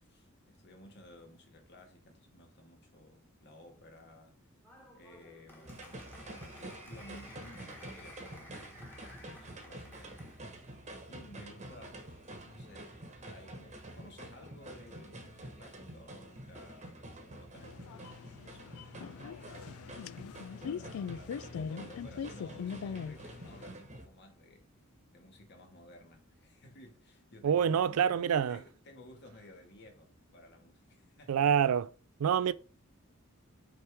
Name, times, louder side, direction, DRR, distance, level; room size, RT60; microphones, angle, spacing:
voice 1, 0.0-4.4 4.9-10.6 11.1-20.3 20.6-24.7 25.1-28.2 28.5-31.7 32.5-32.6, left 1 dB, 55° left, 1.5 m, -56 dB
Applause, 4.6-10.4, left 1 dB, 10° left, 1.5 m, -54 dB
sound 1, 5.6-24.1, right 1 dB, 35° right, 1.2 m, -48 dB
sound 2, 17.6-23.6, left 7 dB, 80° left, 0.3 m, -41 dB
voice 2, 27.4-28.6 31.3-31.8 32.2-32.5, right 8 dB, 90° right, 0.4 m, -26 dB
5.8 x 4.7 x 3.4 m
head